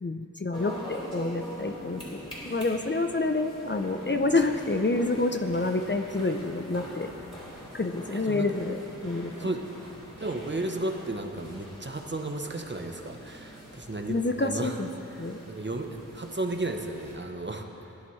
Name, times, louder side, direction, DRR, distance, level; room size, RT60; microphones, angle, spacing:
voice 1, 0.0-7.1 7.7-9.3 14.1-14.9 15.2-15.4, left 2 dB, 35° left, 5 dB, 0.6 m, -28 dB
sound 1, 0.5-17.2, equal, 15° left, 3.3 m, -44 dB
voice 2, 8.1-8.5 9.4-9.6 10.2-14.8 15.5-17.7, right 2 dB, 35° right, 4 dB, 0.8 m, -33 dB
19.0 x 10.5 x 3.2 m, 2.9 s
wide cardioid pair, 55°, 33 cm